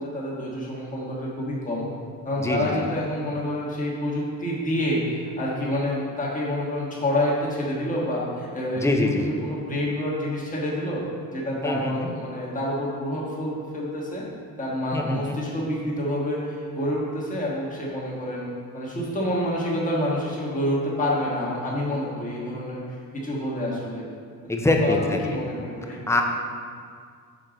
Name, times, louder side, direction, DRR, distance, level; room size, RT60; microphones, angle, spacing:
voice 1, 0.0-1.9 2.2-11.0 11.3-14.2 14.6-18.5 18.7-22.8 23.2-24.0 24.8-26.0, left 1 dB, 25° left, -5 dB, 1.4 m, -28 dB
voice 2, 8.8-9.3 11.6-12.1 14.9-15.4 24.5-25.2 25.9-26.2, left 2 dB, 10° left, 2 dB, 0.5 m, -24 dB
6.6 x 4.6 x 3.8 m, 2.1 s
wide cardioid pair, 145°, 32 cm